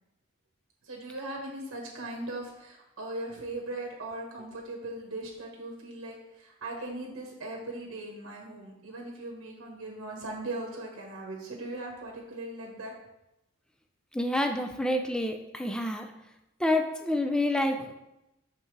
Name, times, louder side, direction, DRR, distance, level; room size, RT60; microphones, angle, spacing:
voice 1, 0.8-12.9 17.8-17.9, right 2 dB, 60° right, 0 dB, 1.2 m, -39 dB
voice 2, 14.1-16.1 16.6-17.9, left 1 dB, 5° left, 4 dB, 0.4 m, -28 dB
6.6 x 5.6 x 3.2 m, 0.90 s
head